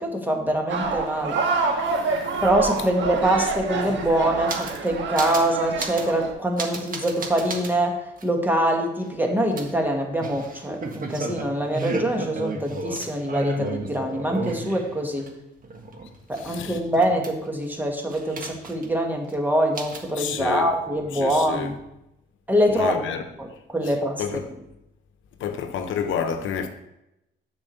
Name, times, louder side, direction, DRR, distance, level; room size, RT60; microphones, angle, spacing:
voice 1, 0.0-1.4 2.4-15.3 16.3-21.7 22.5-22.9 23.4-24.2, right 1 dB, 10° right, 1.7 m, -24 dB
sound 1, 0.7-6.3, right 4 dB, 70° right, 1.4 m, -27 dB
sound 2, 3.7-4.9 5.2-5.5 5.8-6.1 6.6-7.7 8.2-8.3 9.6-15.3 15.6-17.6 18.1-19.0 19.2-19.3 19.7-20.1, right 3 dB, 45° right, 1.4 m, -33 dB
voice 2, 16.3-16.8 20.2-20.7 21.1-21.7 22.7-23.2 24.2-24.5 25.4-26.7, left 7 dB, 80° left, 0.9 m, -29 dB
7.2 x 4.8 x 6.8 m
cardioid pair, 90°, 20 cm